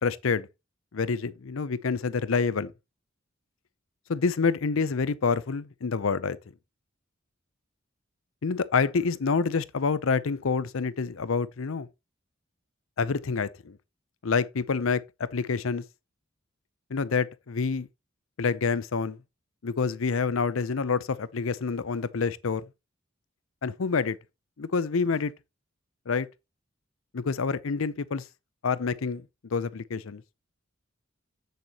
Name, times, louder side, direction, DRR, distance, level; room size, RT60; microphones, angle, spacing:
voice 1, 0.0-0.5 0.9-2.7 4.1-6.4 8.4-11.9 13.0-13.8 14.2-15.0 15.3-15.8 16.9-17.9 18.4-19.2 19.6-22.7 23.6-24.2 24.6-25.3 26.1-26.3 27.1-28.2 28.6-29.2 29.5-30.2, left 5 dB, 85° left, 0.6 m, -27 dB
8.0 x 6.8 x 2.9 m
head